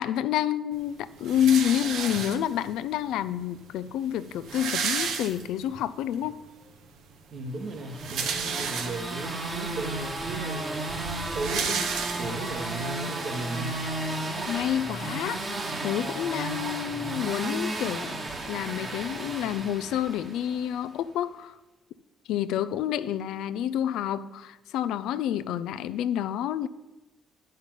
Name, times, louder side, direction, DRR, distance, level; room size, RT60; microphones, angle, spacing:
voice 1, 0.0-6.4 14.5-15.4 15.8-18.2 18.5-21.5 22.3-26.7, left 10 dB, 90° left, 14 dB, 0.4 m, -28 dB
sound 1, 1.2-2.7 3.5-3.6 3.8-3.9 4.2-5.8 6.2-6.3 7.7-9.3 9.9-10.0 10.3-12.6, right 6 dB, 80° right, 0.8 m, -32 dB
voice 2, 7.3-10.8 11.3-11.9 12.2-13.8, right 2 dB, 65° right, 5 dB, 1.4 m, -36 dB
sound 2, 7.8-20.7, right 2 dB, 35° right, 1.3 m, -33 dB
8.9 x 5.6 x 7.5 m, 1.1 s
cardioid pair, 90°, 0 cm